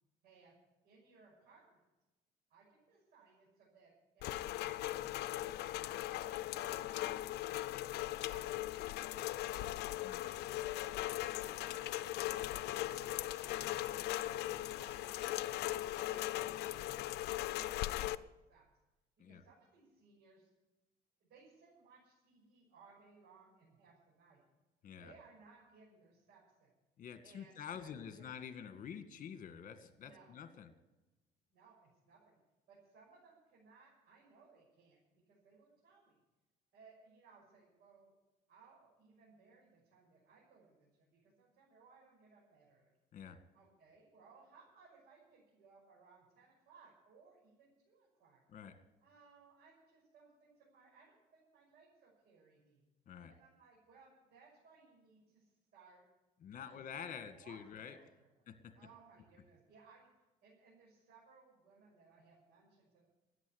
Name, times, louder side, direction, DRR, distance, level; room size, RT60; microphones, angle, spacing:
voice 1, 0.2-0.5 0.8-1.8 2.5-5.3 5.6-6.9 7.4-8.8 9.4-13.8 14.7-18.7 19.3-20.5 21.2-24.4 25.0-26.7 27.2-28.3 30.0-30.4 31.5-32.4 32.7-36.2 36.7-38.1 38.5-43.0 43.5-48.4 49.0-52.8 53.3-56.0 56.6-56.8 57.4-58.3 58.7-60.1 60.4-63.1, right 4 dB, 75° right, -5 dB, 6.8 m, -64 dB
Rain, 4.2-18.2, left 15 dB, 75° left, 0.6 m, -39 dB
voice 2, 27.0-30.7 43.1-43.4 48.5-48.7 53.1-53.3 56.4-58.0 58.5-58.7, left 7 dB, 50° left, 9 dB, 1.9 m, -48 dB
13.5 x 9.8 x 9.6 m, 1.0 s
cardioid pair, 110°, 17 cm